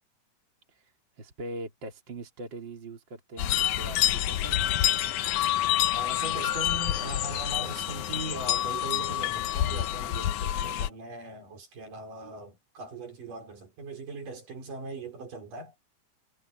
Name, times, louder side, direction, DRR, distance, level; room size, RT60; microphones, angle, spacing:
voice 1, 1.2-4.7, right 2 dB, 35° right, 3.9 m, -41 dB
sound 1, 3.4-10.9, left 12 dB, 75° left, 2.2 m, -27 dB
voice 2, 5.9-15.7, right 2 dB, 80° right, 6.9 m, -40 dB
omnidirectional pair, 3.7 m